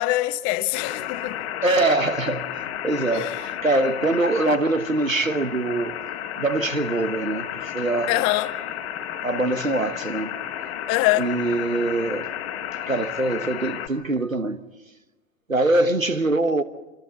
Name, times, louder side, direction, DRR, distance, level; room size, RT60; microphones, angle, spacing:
voice 1, 0.0-1.5 3.1-3.4 8.1-8.5 10.9-11.3, left 18 dB, 35° left, 1.1 m, -23 dB
sound 1, 0.7-13.9, left 10 dB, 50° left, 1.8 m, -32 dB
voice 2, 1.6-6.0 6.4-8.2 9.2-10.3 11.2-12.3 12.9-14.6 15.5-16.6, right 2 dB, 90° right, 1.3 m, -23 dB
26.5 x 25.5 x 4.2 m
figure-of-eight pair, 95°, 39 cm